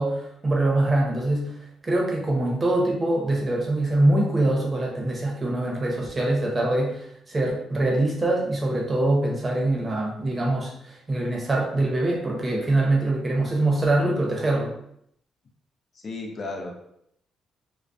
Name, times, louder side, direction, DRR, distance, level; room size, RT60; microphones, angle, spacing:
voice 1, 0.0-1.5 1.8-14.7, right 2 dB, 25° right, -2 dB, 0.7 m, -24 dB
voice 2, 15.9-16.7, left 2 dB, 45° left, 2 dB, 0.5 m, -34 dB
2.2 x 2.1 x 2.6 m, 0.72 s
cardioid pair, 90°, 0 cm